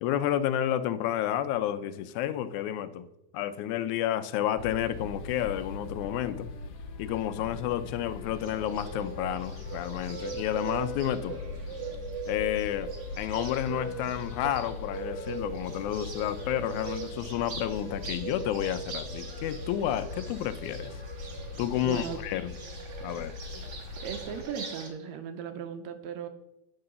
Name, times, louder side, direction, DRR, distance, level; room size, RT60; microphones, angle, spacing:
voice 1, 0.0-3.1 3.3-6.5 7.0-11.4 12.3-12.9 13.2-21.0 21.6-22.5 23.0-23.3, left 11 dB, 85° left, 12 dB, 2.0 m, -30 dB
sound 1, 4.6-24.4, left 3 dB, 65° left, 1.7 m, -41 dB
sound 2, 5.7-11.6 12.3-19.5, left 4 dB, 45° left, 1.8 m, -53 dB
Bird, 8.4-24.9, right 5 dB, 50° right, 1.4 m, -41 dB
voice 2, 21.8-22.2 24.0-26.3, right 8 dB, 75° right, 8 dB, 1.9 m, -37 dB
9.7 x 3.8 x 6.7 m, 0.92 s
omnidirectional pair, 3.4 m